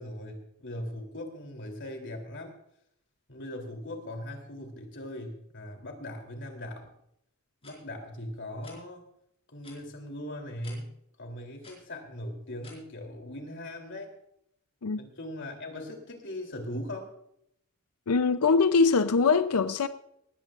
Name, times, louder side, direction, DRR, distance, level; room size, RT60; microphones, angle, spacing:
voice 1, 0.0-2.5 3.3-6.9 7.6-9.0 9.5-10.9 11.2-14.1 15.0-17.1, left 1 dB, 55° left, 3.2 m, -39 dB
sound 1, 7.6-7.7 8.6-8.8 9.6-9.8 10.6-10.8 11.6-11.7 12.6-12.7, left 3 dB, 25° left, 5.1 m, -50 dB
voice 2, 18.1-19.9, left 4 dB, 90° left, 0.6 m, -23 dB
19.5 x 15.5 x 2.5 m
head